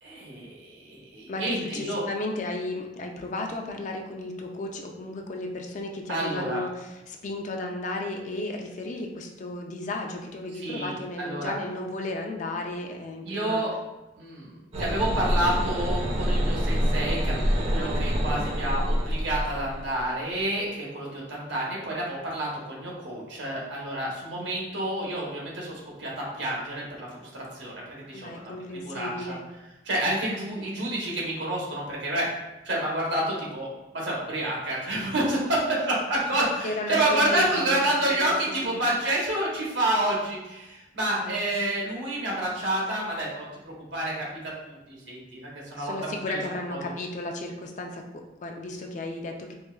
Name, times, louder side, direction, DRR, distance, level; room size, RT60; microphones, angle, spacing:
voice 1, 0.0-2.0 6.1-6.6 10.5-11.5 13.2-13.7 14.2-27.3 27.5-28.3 28.8-29.3 29.8-32.3 32.6-33.7 33.9-44.2 44.7-46.2 46.7-46.8, right 1 dB, 90° right, -4 dB, 1.1 m, -29 dB
voice 2, 1.3-13.7 28.1-29.5 36.3-37.7 38.1-38.8 41.2-41.3 45.8-49.6, left 2 dB, 40° left, 3 dB, 0.4 m, -34 dB
sound 1, 14.7-20.1, equal, 35° right, 0.5 m, -26 dB
4.3 x 2.2 x 2.3 m, 1.0 s
head